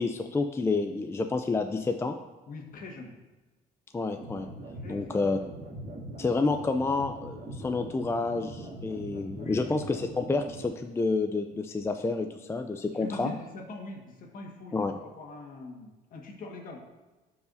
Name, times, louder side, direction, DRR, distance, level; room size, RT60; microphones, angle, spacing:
voice 1, 0.0-2.2 3.9-4.5 4.9-5.4 6.2-13.3 14.7-14.9, left 3 dB, 15° left, 6 dB, 0.4 m, -29 dB
voice 2, 2.5-3.1 4.8-5.0 9.3-9.7 12.9-16.8, left 2 dB, 55° left, 1 dB, 1.6 m, -42 dB
sound 1, 4.2-10.7, right 1 dB, 45° right, 1.7 m, -42 dB
12.5 x 4.8 x 2.6 m, 1.2 s
cardioid pair, 110°, 17 cm